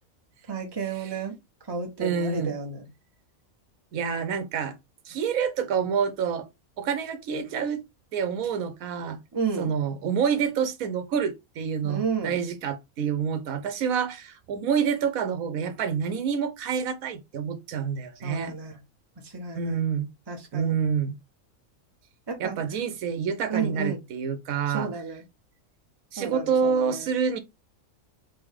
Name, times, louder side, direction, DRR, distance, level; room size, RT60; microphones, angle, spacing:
voice 1, 0.5-1.3 1.7-2.9 9.3-9.7 11.8-12.4 18.2-18.8 19.2-19.8 20.3-20.7 22.3-22.6 23.5-24.0 24.7-25.2 26.2-27.1, right 5 dB, 20° right, 1.0 m, -32 dB
voice 2, 2.0-2.5 3.9-4.8 5.0-6.5 6.8-7.8 8.1-9.2 9.6-18.6 19.5-20.1 20.5-21.2 22.4-24.9 26.1-27.4, right 7 dB, 85° right, 1.1 m, -27 dB
3.8 x 3.4 x 3.5 m
omnidirectional pair, 1.4 m